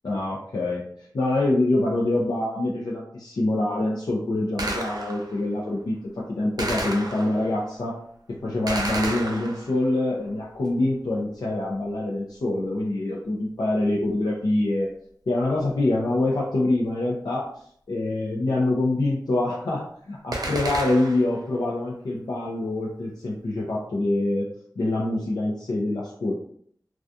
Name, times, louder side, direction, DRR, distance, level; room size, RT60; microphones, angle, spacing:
voice 1, 0.0-0.8 1.1-8.0 8.3-14.9 15.3-17.5 17.9-24.5 24.8-26.4, left 2 dB, 70° left, -4 dB, 0.4 m, -25 dB
Gunshot gunfire, 4.6-5.4 6.6-7.6 8.7-9.9 20.3-21.4, right 2 dB, 65° right, 0.4 m, -31 dB
2.3 x 2.3 x 2.6 m, 0.63 s
wide cardioid pair, 75°, 7 cm